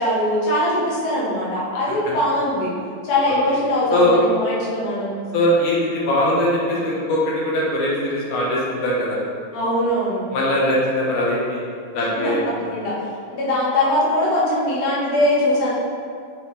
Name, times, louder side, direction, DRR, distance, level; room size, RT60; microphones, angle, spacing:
voice 1, 0.0-2.7 3.0-5.2 9.5-10.2 12.2-13.0 13.3-15.7, left 1 dB, 90° left, -6 dB, 3.1 m, -21 dB
voice 2, 5.3-9.2 10.3-11.6 11.9-12.4, left 1 dB, 65° left, -5 dB, 2.5 m, -20 dB
6.5 x 6.1 x 3.2 m, 2.3 s
omnidirectional pair, 3.9 m